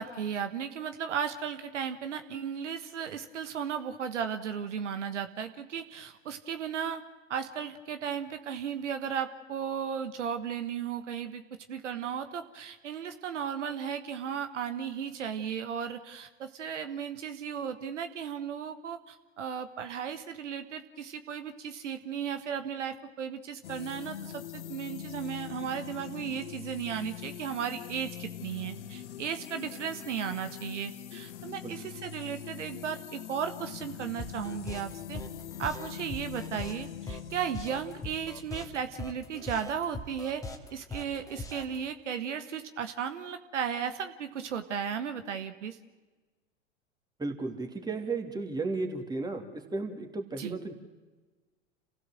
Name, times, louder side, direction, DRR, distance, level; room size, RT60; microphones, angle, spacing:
voice 1, 0.0-7.0 7.3-11.4 11.7-35.2 35.6-40.4 40.7-45.8 50.4-50.6, right 7 dB, 75° right, 9 dB, 1.4 m, -35 dB
sound 1, 23.6-39.4, left 10 dB, 70° left, 1.1 m, -43 dB
sound 2, 34.2-41.8, left 2 dB, 10° left, 2.3 m, -41 dB
voice 2, 47.2-50.7, right 3 dB, 10° right, 3 dB, 3.0 m, -34 dB
28.0 x 16.0 x 7.6 m, 1.3 s
figure-of-eight pair, 90°, 36 cm